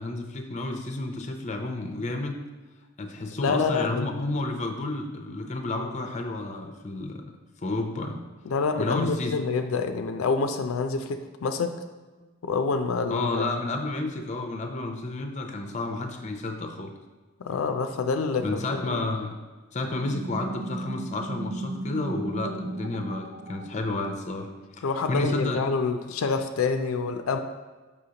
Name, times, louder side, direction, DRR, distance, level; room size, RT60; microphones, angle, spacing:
voice 1, 0.0-2.3 3.0-7.2 7.6-8.2 8.8-9.4 12.2-12.3 13.1-16.9 18.4-19.4 19.7-24.5 24.8-25.6, left 2 dB, 35° left, 4 dB, 0.5 m, -31 dB
voice 2, 3.4-4.2 8.5-11.7 12.4-13.5 17.4-19.0 24.8-27.4, left 4 dB, 90° left, 6 dB, 0.4 m, -27 dB
sound 1, 20.1-24.3, right 2 dB, 35° right, 0.5 m, -35 dB
6.4 x 5.4 x 2.8 m, 1.3 s
head